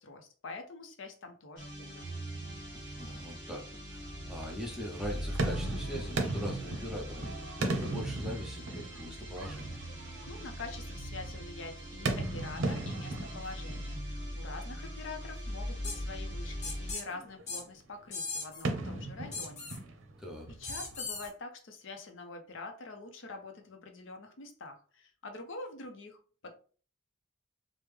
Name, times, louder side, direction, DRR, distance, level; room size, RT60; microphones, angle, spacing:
voice 1, 0.0-2.1 10.3-19.7 20.6-26.5, left 3 dB, 70° left, 0.6 m, -45 dB
sound 1, 1.6-17.0, equal, 45° right, 1.4 m, -41 dB
voice 2, 2.9-9.8 20.2-20.5, equal, 5° right, 0.6 m, -41 dB
sound 2, 4.1-4.6 5.0-10.9 11.8-14.4 14.7-14.9 15.6-15.7 15.9-16.0 16.3-16.6 17.1-17.7 18.4-21.3, right 2 dB, 80° right, 0.6 m, -37 dB
sound 3, 15.8-16.0 16.6-17.0 17.5-17.6 18.1-18.6 19.3-19.8 20.6-21.3, left 4 dB, 35° left, 0.9 m, -38 dB
3.3 x 2.1 x 3.2 m
head